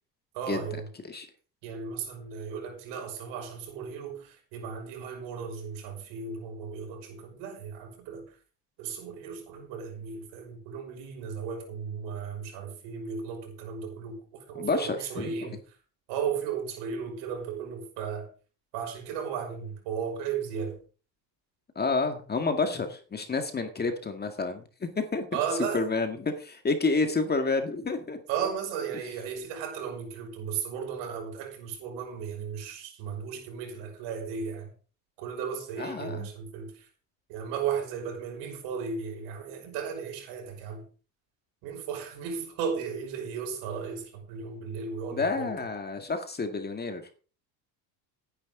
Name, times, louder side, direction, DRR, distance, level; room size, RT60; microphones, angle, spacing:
voice 1, 0.3-0.9 1.6-8.4 8.8-15.6 16.1-18.3 18.7-20.8 25.3-25.8 28.3-34.7 35.2-36.9 37.3-40.9 41.6-45.5, right 6 dB, 75° right, 5.8 m, -35 dB
voice 2, 14.6-15.3 21.8-25.3 25.7-28.2 35.8-36.3 45.1-47.1, left 3 dB, 20° left, 1.9 m, -29 dB
17.0 x 10.0 x 3.8 m
supercardioid pair, 115°, 43 cm